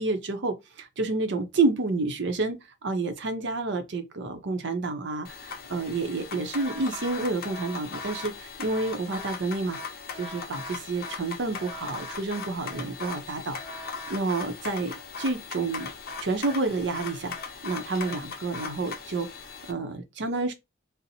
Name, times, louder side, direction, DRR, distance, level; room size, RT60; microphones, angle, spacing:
voice 1, 0.0-9.8 10.1-15.9 16.2-17.3 17.6-19.3 19.7-20.5, right 3 dB, 65° right, 0.6 m, -29 dB
sound 1, 5.2-19.7, left 4 dB, 50° left, 0.6 m, -39 dB
2.7 x 2.0 x 4.0 m
head